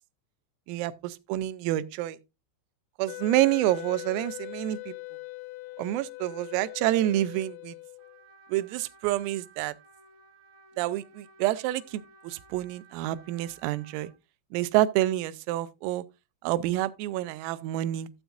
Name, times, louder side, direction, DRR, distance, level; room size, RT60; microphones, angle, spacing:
voice 1, 0.7-2.2 3.0-4.9 5.8-7.8 8.5-9.7 10.8-14.1 14.5-16.0 16.4-18.1, right 15 dB, 85° right, 3.3 m, -28 dB
Wind instrument woodwind instrument, 3.1-8.3, left 23 dB, 85° left, 2.7 m, -41 dB
Trumpet, 8.0-14.2, right 3 dB, 70° right, 1.6 m, -56 dB
13.5 x 8.0 x 2.5 m
omnidirectional pair, 6.0 m